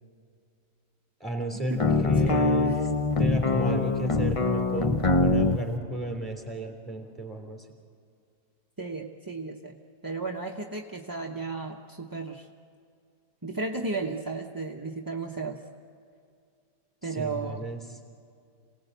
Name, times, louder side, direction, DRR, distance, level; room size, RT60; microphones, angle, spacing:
voice 1, 1.2-2.9 3.2-7.7 17.1-17.8, equal, ahead, 2 dB, 3.3 m, -33 dB
sound 1, 1.8-5.6, left 3 dB, 60° left, 0.3 m, -24 dB
voice 2, 8.8-9.8 10.0-12.5 13.4-15.6 17.0-17.6, right 3 dB, 20° right, 0 dB, 0.7 m, -34 dB
27.0 x 18.5 x 8.1 m, 2.4 s
omnidirectional pair, 1.9 m